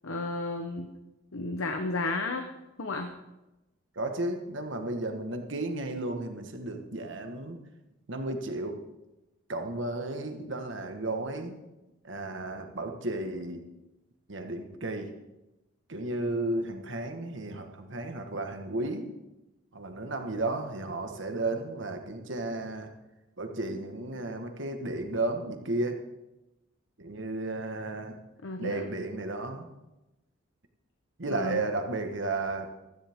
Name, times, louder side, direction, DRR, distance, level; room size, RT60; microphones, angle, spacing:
voice 1, 0.0-0.9 1.3-2.4 2.8-3.1 28.4-28.9 31.3-31.6, left 3 dB, 80° left, 5 dB, 1.0 m, -32 dB
voice 2, 3.9-7.6 8.1-8.8 9.5-11.5 12.0-13.6 14.3-15.1 15.9-19.1 19.7-22.9 23.4-26.0 27.0-28.2 28.6-29.7 31.2-32.7, right 2 dB, 65° right, 5 dB, 1.5 m, -33 dB
15.5 x 13.5 x 3.6 m, 0.99 s
head